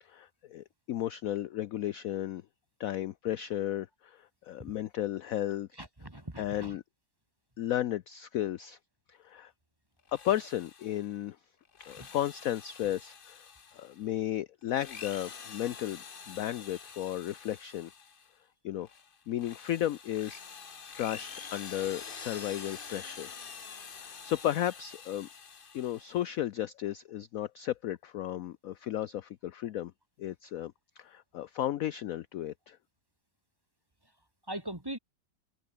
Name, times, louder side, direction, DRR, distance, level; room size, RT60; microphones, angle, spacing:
voice 1, 0.0-2.4 2.8-5.7 6.4-6.8 7.6-8.8 9.1-9.5 10.1-11.4 11.9-13.4 13.7-17.9 18.6-18.9 19.3-20.4 20.9-23.3 23.9-25.3 25.7-29.9 30.2-32.8, left 12 dB, 65° left, 0.9 m, -34 dB
voice 2, 5.7-6.8 12.0-12.1 34.5-35.0, right 1 dB, 15° right, 2.2 m, -40 dB
Drill, 10.0-11.1 11.7-14.0 14.6-18.3 18.8-26.3, left 6 dB, 35° left, 1.1 m, -47 dB
omnidirectional pair, 1.9 m